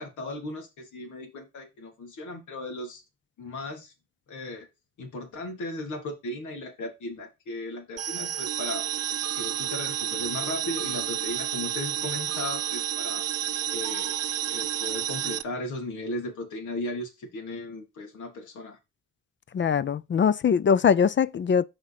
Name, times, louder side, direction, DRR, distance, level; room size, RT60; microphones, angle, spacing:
voice 1, 0.0-3.0 3.4-3.9 4.3-4.7 5.0-8.8 9.3-13.2 13.7-14.1 14.5-18.8, left 2 dB, 75° left, 3.4 m, -36 dB
sound 1, 8.0-15.4, right 10 dB, 55° right, 0.7 m, -30 dB
voice 2, 19.5-21.6, left 7 dB, 40° left, 0.6 m, -22 dB
7.8 x 5.2 x 5.9 m
cardioid pair, 90°, 30 cm